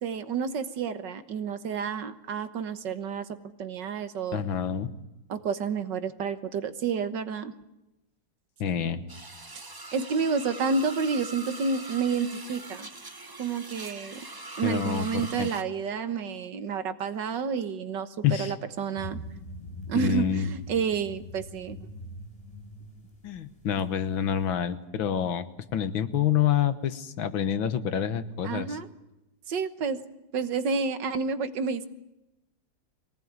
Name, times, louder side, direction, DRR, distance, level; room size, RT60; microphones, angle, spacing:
voice 1, 0.0-3.3 3.6-4.4 5.3-7.5 9.9-12.9 13.4-14.2 14.6-19.2 19.9-21.8 28.4-28.9 29.5-30.0 30.3-31.9, right 5 dB, 65° right, 11 dB, 1.8 m, -30 dB
voice 2, 4.3-4.9 8.6-9.1 14.6-15.5 18.2-18.5 19.9-20.5 23.2-25.5 25.7-28.8, left 9 dB, 90° left, 12 dB, 2.0 m, -27 dB
sound 1, 9.1-15.6, right 2 dB, 20° right, 0.6 m, -42 dB
sound 2, 19.0-24.5, left 1 dB, 15° left, 4.3 m, -43 dB
23.0 x 18.5 x 9.5 m, 0.94 s
omnidirectional pair, 2.1 m